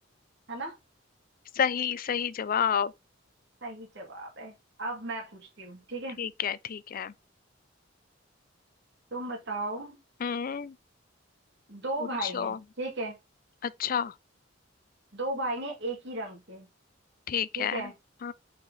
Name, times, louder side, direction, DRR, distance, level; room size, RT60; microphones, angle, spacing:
voice 1, 1.6-2.9 6.2-7.1 10.2-10.7 12.2-12.6 13.6-14.1 17.3-17.8 18.2-18.3, left 8 dB, 45° left, 0.4 m, -29 dB
voice 2, 3.6-4.5 4.8-6.2 9.1-10.0 11.7-13.2 15.1-16.7 17.5-17.9, right 2 dB, 65° right, 2.4 m, -35 dB
5.8 x 4.6 x 4.1 m
head